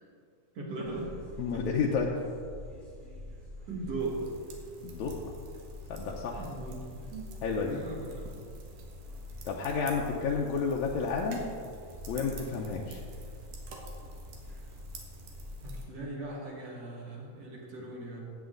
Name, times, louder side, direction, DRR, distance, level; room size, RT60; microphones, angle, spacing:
voice 1, 0.5-1.1 3.7-4.3 6.4-7.4 7.7-8.2 15.6-18.2, right 2 dB, 55° right, -3 dB, 2.9 m, -38 dB
sound 1, 0.8-16.0, left 1 dB, 20° right, 1.9 m, -45 dB
voice 2, 1.4-2.1 4.8-5.2 5.9-6.4 7.4-7.8 9.5-11.4 12.1-13.0, left 5 dB, 75° left, -2 dB, 2.0 m, -31 dB
sound 2, 4.0-15.8, right 4 dB, 90° right, 3.0 m, -52 dB
15.5 x 8.8 x 3.9 m, 2.3 s
omnidirectional pair, 3.6 m